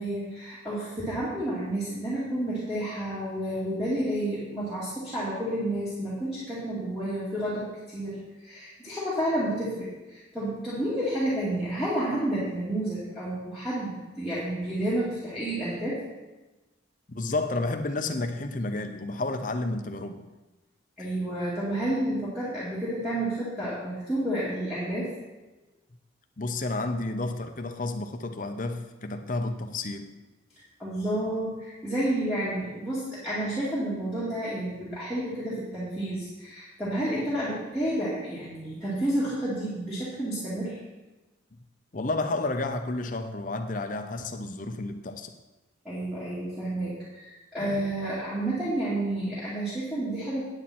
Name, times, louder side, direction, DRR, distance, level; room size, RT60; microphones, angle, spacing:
voice 1, 0.0-16.0 21.0-25.1 30.8-40.8 45.8-50.4, right 1 dB, ahead, -11 dB, 2.2 m, -30 dB
voice 2, 17.1-20.2 26.4-30.1 41.9-45.3 47.6-47.8, left 2 dB, 40° left, 6 dB, 0.7 m, -31 dB
9.0 x 8.8 x 4.3 m, 1.1 s
head